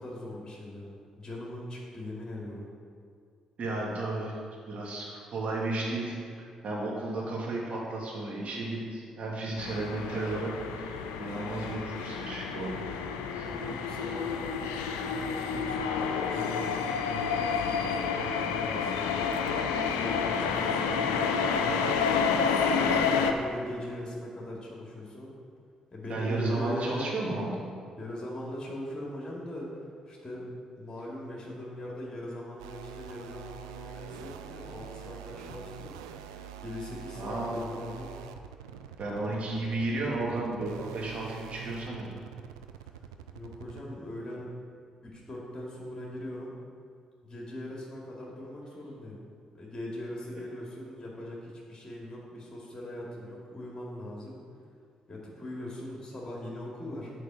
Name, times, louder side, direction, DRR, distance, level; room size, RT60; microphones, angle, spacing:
voice 1, 0.0-2.7 13.4-22.4 23.1-25.3 25.9-27.1 28.0-29.7 30.1-30.5 30.8-35.9 36.6-38.1 43.3-44.5 45.0-46.5 47.2-49.2 49.5-54.4 55.1-57.1, left 1 dB, 25° left, -4 dB, 2.2 m, -40 dB
voice 2, 3.6-4.4 4.7-6.2 6.6-12.8 13.3-13.5 26.1-27.7 34.7-34.9 35.4-35.6 37.2-37.7 39.0-42.1 50.3-50.5, right 2 dB, 50° right, -3 dB, 2.4 m, -33 dB
sound 1, 9.6-23.3, left 6 dB, 75° left, 0.5 m, -29 dB
sound 2, 32.6-43.9, right 9 dB, 80° right, 0.4 m, -45 dB
8.2 x 4.8 x 6.9 m, 2.2 s
figure-of-eight pair, 40°, 3 cm